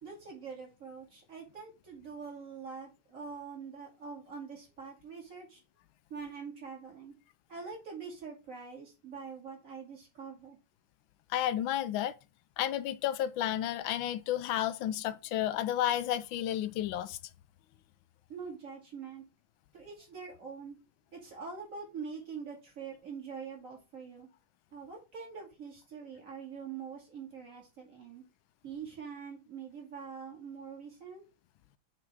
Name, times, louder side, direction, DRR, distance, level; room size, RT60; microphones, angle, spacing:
voice 1, 0.0-5.6 6.1-7.1 7.5-10.6 18.3-19.2 19.7-20.8 21.1-24.3 24.7-28.2 28.6-31.2, right 5 dB, 40° right, 2.6 m, -44 dB
voice 2, 11.3-12.2 12.6-17.2, left 12 dB, 85° left, 1.4 m, -31 dB
5.9 x 3.9 x 4.7 m
omnidirectional pair, 2.1 m